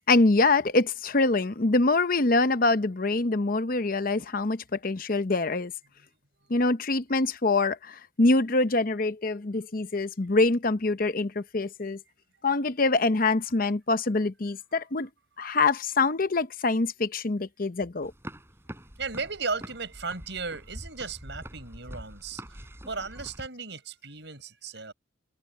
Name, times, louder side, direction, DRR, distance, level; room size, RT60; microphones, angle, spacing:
voice 1, 0.1-5.7 6.5-12.0 12.4-15.1 15.4-18.1, left 3 dB, 45° left, 0.8 m, -25 dB
sound 1, 18.0-23.5, equal, 15° right, 7.8 m, -44 dB
voice 2, 19.0-24.9, right 4 dB, 65° right, 7.3 m, -36 dB
head